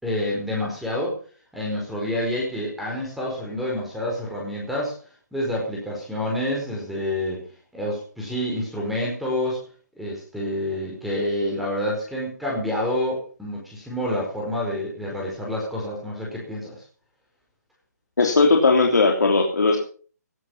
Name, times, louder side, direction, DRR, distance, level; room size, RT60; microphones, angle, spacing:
voice 1, 0.0-1.2 1.5-5.0 5.3-7.4 7.7-9.6 10.0-16.8, left 1 dB, ahead, -4 dB, 4.7 m, -28 dB
voice 2, 18.2-19.8, left 3 dB, 75° left, 1 dB, 3.2 m, -18 dB
18.0 x 9.6 x 5.6 m, 0.42 s
figure-of-eight pair, 150°, 9 cm